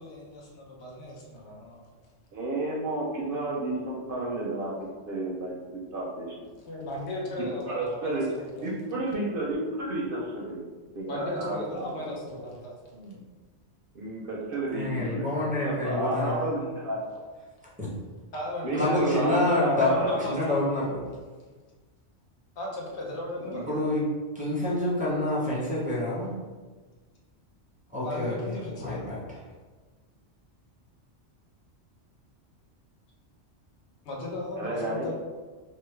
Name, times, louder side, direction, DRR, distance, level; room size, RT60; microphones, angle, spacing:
voice 1, 0.0-1.9 6.6-8.7 11.1-12.7 18.3-20.8 22.6-23.9 28.0-29.1 34.0-35.1, left 1 dB, 70° left, -3 dB, 1.0 m, -36 dB
voice 2, 2.3-4.7 5.1-6.3 7.4-8.3 8.6-10.6 10.9-12.0 12.9-13.2 13.9-15.3 15.6-17.2 18.6-20.2 23.5-23.7 34.6-35.1, right 2 dB, 60° right, -4 dB, 0.6 m, -31 dB
voice 3, 14.7-16.5 17.8-17.9 18.7-21.0 23.7-24.0 24.3-26.3 27.9-29.2, left 1 dB, 10° right, -9 dB, 0.7 m, -27 dB
3.1 x 2.1 x 3.1 m, 1.4 s
omnidirectional pair, 1.2 m